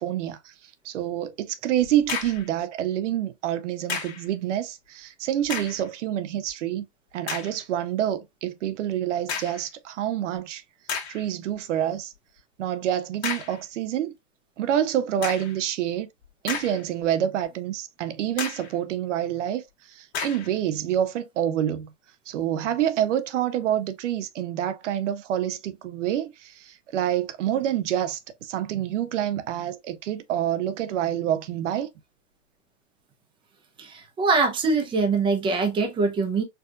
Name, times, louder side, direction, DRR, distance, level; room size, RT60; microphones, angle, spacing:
voice 1, 0.0-6.8 7.1-10.6 11.1-12.1 12.6-14.1 14.6-16.1 16.4-21.9 22.3-31.9, right 11 dB, 70° right, 0.6 m, -27 dB
sound 1, 1.8-2.5 3.9-4.3 5.4-5.9 6.5-6.6 7.3-7.6 9.3-9.7 10.4-10.5 10.9-11.3 13.2-13.6 15.2-15.6 16.2-17.0 17.4-17.5 18.4-18.8 20.1-20.5, left 6 dB, 60° left, 1.3 m, -32 dB
voice 2, 33.8-36.4, right 4 dB, 15° right, 0.6 m, -23 dB
4.5 x 2.4 x 2.4 m
hypercardioid pair, 125°, 37 cm